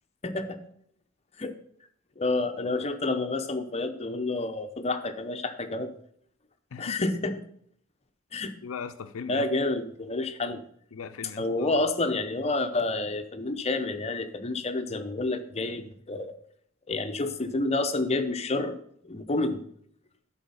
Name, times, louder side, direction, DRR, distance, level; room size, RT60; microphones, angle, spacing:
voice 1, 0.2-0.6 1.4-1.5 2.2-5.9 6.8-7.3 8.3-8.5 9.3-10.6 11.4-16.4 16.9-18.8 19.0-19.6, left 2 dB, 30° left, 8 dB, 0.7 m, -29 dB
voice 2, 6.7-7.1 8.6-9.5 10.9-11.7, left 6 dB, 90° left, 9 dB, 0.5 m, -39 dB
11.5 x 4.2 x 5.5 m, 0.65 s
head